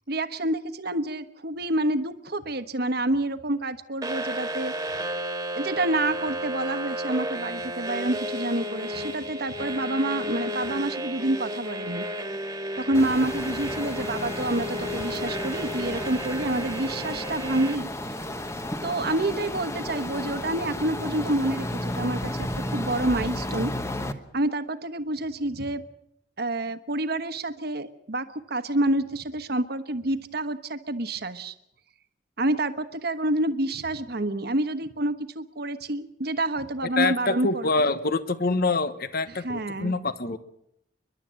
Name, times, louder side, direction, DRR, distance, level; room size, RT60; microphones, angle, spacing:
voice 1, 0.1-5.1 5.5-12.0 12.8-18.2 18.8-23.7 24.3-25.8 26.4-31.5 32.4-37.9 39.3-39.9, right 1 dB, 60° right, 11 dB, 1.2 m, -28 dB
sound 1, 4.0-17.8, equal, 20° right, 1.8 m, -32 dB
sound 2, 12.9-24.1, left 1 dB, 15° left, 1.0 m, -33 dB
voice 2, 37.0-40.4, left 3 dB, 55° left, 13 dB, 1.1 m, -25 dB
29.5 x 11.5 x 7.6 m, 0.77 s
head